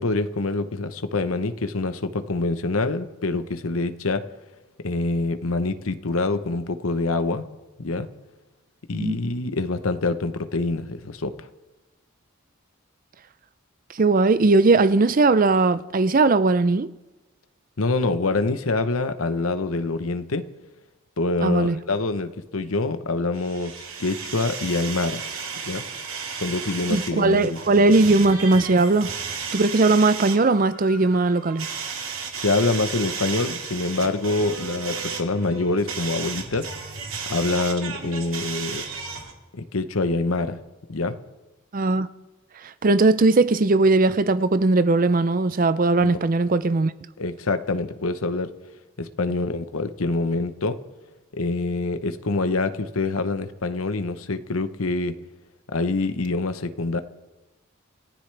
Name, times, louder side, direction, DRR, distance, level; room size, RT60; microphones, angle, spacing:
voice 1, 0.0-4.2 4.8-7.5 7.8-8.1 8.9-11.5 17.8-20.5 21.2-25.2 25.6-25.9 26.3-27.6 32.3-36.7 37.3-38.8 39.5-40.6 40.9-41.2 46.0-46.3 47.2-48.5 49.0-50.8 51.3-55.2 55.7-57.0, left 3 dB, 85° left, 1.0 m, -25 dB
voice 2, 13.9-16.9 21.4-21.8 26.9-29.1 29.5-31.7 41.7-42.1 42.6-46.9, right 3 dB, 40° right, 0.5 m, -19 dB
sound 1, 23.3-39.3, right 6 dB, 80° right, 2.3 m, -34 dB
28.0 x 15.0 x 3.4 m
head